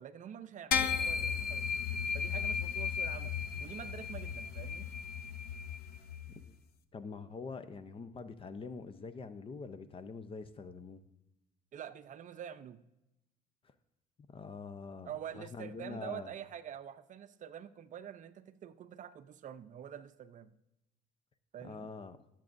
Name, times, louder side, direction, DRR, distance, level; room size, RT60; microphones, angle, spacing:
voice 1, 0.0-1.7 2.1-3.3 3.6-4.9 11.7-12.8 15.0-20.5 21.5-21.9, right 9 dB, 50° right, 12 dB, 0.6 m, -46 dB
sound 1, 0.7-6.3, left 7 dB, 70° left, 0.7 m, -35 dB
voice 2, 6.9-11.0 14.3-16.3 21.6-22.2, left 4 dB, 35° left, 12 dB, 0.7 m, -45 dB
17.5 x 7.5 x 2.6 m, 0.91 s
cardioid pair, 110°, 17 cm